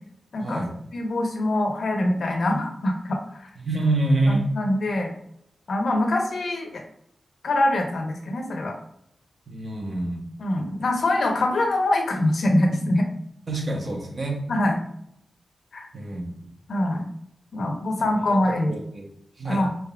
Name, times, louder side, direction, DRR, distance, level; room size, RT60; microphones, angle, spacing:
voice 1, 0.4-0.7 3.6-4.5 9.5-10.2 13.5-14.4 15.9-16.3 18.6-19.1 19.4-19.7, right 2 dB, 50° right, 0 dB, 0.9 m, -26 dB
voice 2, 0.9-3.5 4.3-5.1 5.7-6.8 7.4-8.7 10.4-13.1 14.5-14.8 15.7-15.9 16.7-17.0 17.5-18.7 19.5-19.7, left 1 dB, 70° left, 2 dB, 0.7 m, -24 dB
4.0 x 3.6 x 2.3 m, 0.73 s
wide cardioid pair, 95°, 0 cm